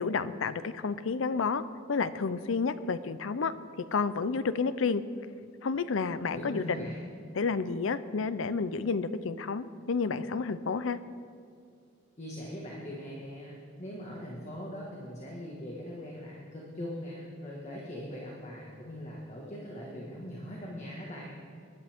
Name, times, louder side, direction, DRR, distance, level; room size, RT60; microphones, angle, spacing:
voice 1, 0.0-1.6 1.9-3.5 3.9-5.0 5.6-6.9 7.3-11.0, left 4 dB, 75° left, 14 dB, 0.6 m, -30 dB
voice 2, 6.3-7.0 12.2-21.4, equal, 35° left, -3 dB, 1.7 m, -41 dB
20.0 x 11.0 x 3.6 m, 2.4 s
head